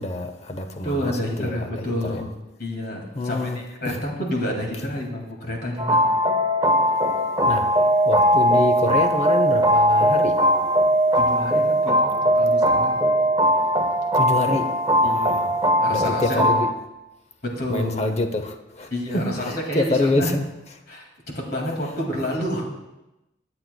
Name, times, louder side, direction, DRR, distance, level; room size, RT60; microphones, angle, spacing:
voice 1, 0.0-1.1 1.4-1.6 2.1-2.2 3.2-3.6 3.8-4.0 7.5-7.8 8.0-10.5 14.1-15.5 15.9-16.7 17.7-20.4, left 2 dB, 35° left, 0.7 m, -26 dB
voice 2, 0.8-2.3 2.6-6.0 11.1-13.0 15.0-15.5 15.8-16.5 17.4-18.0 18.9-20.3 20.9-22.7, left 1 dB, 55° left, 2.2 m, -29 dB
sound 1, 5.8-16.7, equal, 20° right, 0.6 m, -19 dB
18.5 x 7.8 x 2.2 m
head